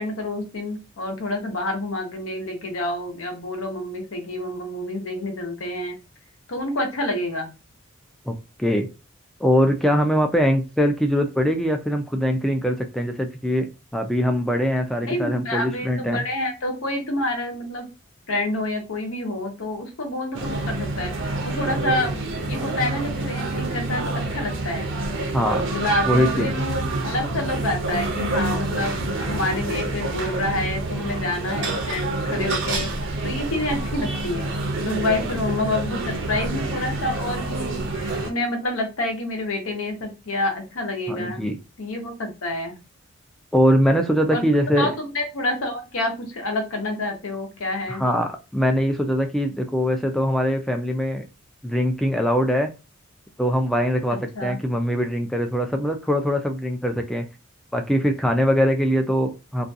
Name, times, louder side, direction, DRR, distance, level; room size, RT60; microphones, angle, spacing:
voice 1, 0.0-5.9 6.5-7.5 15.0-17.9 18.3-21.1 21.4-24.9 25.6-32.9 33.2-34.5 34.8-41.4 41.8-42.8 44.3-44.4 44.8-48.0 54.1-54.6, left 2 dB, 75° left, 3 dB, 0.7 m, -28 dB
voice 2, 8.3-8.9 9.4-13.7 13.9-16.2 25.3-25.6 26.1-26.5 41.1-41.6 43.5-44.9 47.9-51.3 51.6-52.7 53.4-57.3 57.7-59.7, equal, ahead, 4 dB, 0.3 m, -22 dB
sound 1, 20.3-38.3, right 2 dB, 60° right, 0.6 m, -27 dB
2.4 x 2.2 x 2.6 m, 0.29 s
head